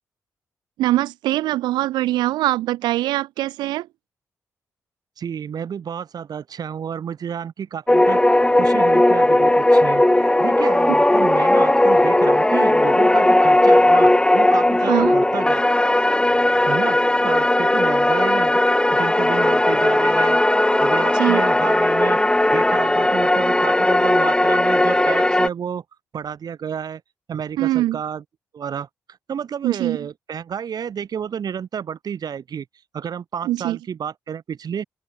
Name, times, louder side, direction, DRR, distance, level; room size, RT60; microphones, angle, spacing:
voice 1, 0.8-3.9 14.8-15.2 21.1-21.4 27.6-28.0 29.6-30.0 33.4-33.8, right 16 dB, 80° right, 0.7 m, -22 dB
voice 2, 5.2-8.2 8.5-15.6 16.7-20.4 20.8-22.2 22.5-25.8 26.1-27.0 27.3-28.2 28.5-28.9 29.3-32.6 32.9-34.8, right 8 dB, 60° right, 4.0 m, -31 dB
sound 1, 7.9-25.5, left 1 dB, 10° left, 1.3 m, -17 dB
open air
hypercardioid pair, 40°, 7 cm